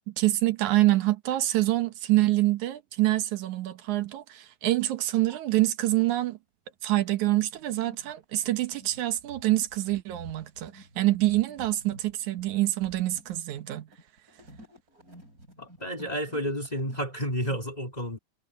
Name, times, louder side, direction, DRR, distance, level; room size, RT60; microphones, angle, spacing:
voice 1, 0.1-6.4 6.8-13.9, right 16 dB, 80° right, 2.5 m, -26 dB
sound 1, 5.3-6.0 6.7-17.6, right 1 dB, 25° right, 8.6 m, -51 dB
voice 2, 15.6-18.2, equal, 15° left, 2.5 m, -31 dB
omnidirectional pair, 3.4 m